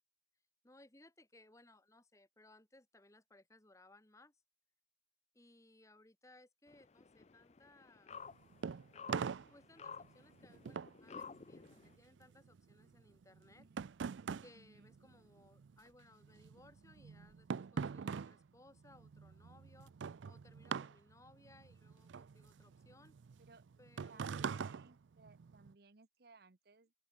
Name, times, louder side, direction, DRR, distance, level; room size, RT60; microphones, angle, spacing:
voice 1, 0.6-4.4 5.3-8.2 9.5-13.7 14.4-19.9 20.3-23.1 23.8-24.5, left 2 dB, 15° left, 1.9 m, -64 dB
sound 1, 6.7-12.0, left 5 dB, 35° left, 0.5 m, -53 dB
sound 2, 8.1-15.8 16.0-25.7, right 6 dB, 85° right, 0.4 m, -44 dB
voice 2, 14.5-14.9 23.4-23.6 24.1-26.9, right 3 dB, 55° right, 1.0 m, -63 dB
open air
head